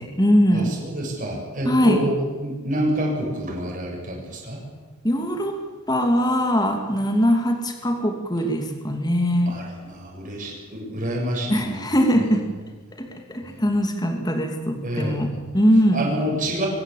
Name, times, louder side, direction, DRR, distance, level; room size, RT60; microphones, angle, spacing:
voice 1, 0.0-0.8 1.6-2.0 5.0-5.5 5.9-9.6 11.5-12.5 12.9-16.1, equal, 20° left, 4 dB, 2.5 m, -21 dB
voice 2, 0.5-4.6 9.5-11.8 12.1-12.2 14.8-15.3 15.9-16.7, right 1 dB, 35° right, -1 dB, 7.0 m, -27 dB
23.5 x 17.5 x 8.6 m, 1.3 s
head